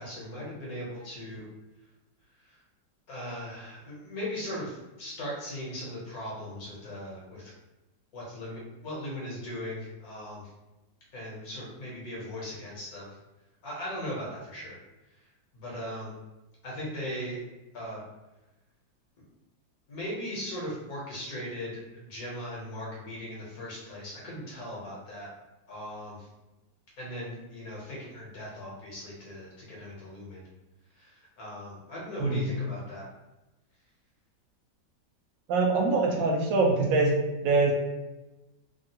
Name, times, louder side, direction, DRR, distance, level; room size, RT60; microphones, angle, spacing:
voice 1, 0.0-1.5 2.4-2.6 3.1-7.5 8.1-10.5 11.1-13.2 13.6-14.8 15.5-16.1 16.6-17.4 17.7-18.0 19.9-25.3 25.7-26.3 27.0-30.5 30.9-33.0, left 1 dB, 60° left, -5 dB, 1.2 m, -38 dB
voice 2, 35.5-37.1 37.4-37.7, right 3 dB, 75° right, 0 dB, 1.3 m, -24 dB
3.5 x 2.3 x 2.7 m, 1.0 s
omnidirectional pair, 2.0 m